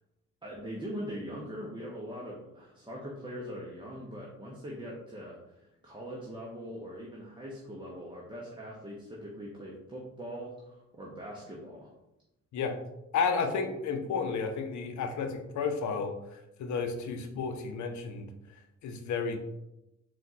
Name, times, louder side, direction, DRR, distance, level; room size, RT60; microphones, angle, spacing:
voice 1, 0.4-11.9, equal, 15° right, -3 dB, 0.8 m, -42 dB
voice 2, 13.1-18.3 18.8-19.4, left 5 dB, 70° left, 7 dB, 0.7 m, -32 dB
4.2 x 2.4 x 4.0 m, 0.89 s
cardioid pair, 90°, 30 cm